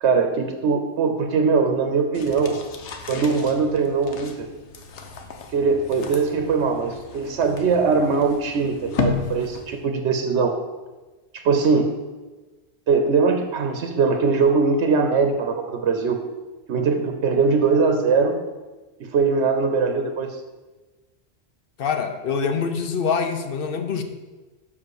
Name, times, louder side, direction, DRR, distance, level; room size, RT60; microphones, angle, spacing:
voice 1, 0.0-2.6 3.1-4.5 5.5-10.5 11.3-11.9 12.9-16.2 16.7-18.4 19.0-20.4, right 4 dB, 85° right, 5 dB, 1.0 m, -21 dB
sound 1, 2.1-9.9, left 4 dB, 90° left, 1.1 m, -33 dB
voice 2, 21.8-24.0, left 6 dB, 60° left, 7 dB, 0.8 m, -25 dB
5.5 x 4.9 x 6.4 m, 1.2 s
omnidirectional pair, 1.1 m